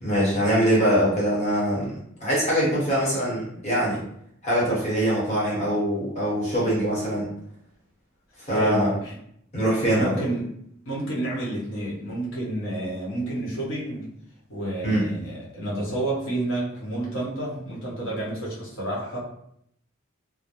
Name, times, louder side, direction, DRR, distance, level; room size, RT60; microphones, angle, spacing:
voice 1, 0.0-1.9 2.2-4.0 4.4-7.3 8.5-8.9 9.5-10.1 14.8-15.1, equal, 30° left, -7 dB, 0.9 m, -23 dB
voice 2, 8.5-9.1 9.8-10.5 10.9-14.1 14.5-19.2, right 1 dB, 65° left, -5 dB, 0.8 m, -30 dB
2.3 x 2.0 x 2.8 m, 0.71 s
head